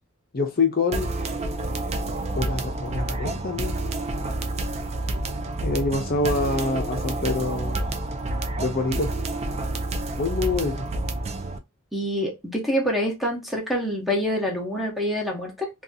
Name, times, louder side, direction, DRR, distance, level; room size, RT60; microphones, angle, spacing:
voice 1, 0.3-1.1 2.4-3.7 5.6-7.8 8.6-9.1 10.2-10.9, left 3 dB, 40° left, 0.5 m, -26 dB
sound 1, 0.9-11.6, right 2 dB, 30° right, 0.3 m, -29 dB
voice 2, 11.9-15.7, equal, ahead, 0.7 m, -26 dB
2.6 x 2.3 x 2.5 m
head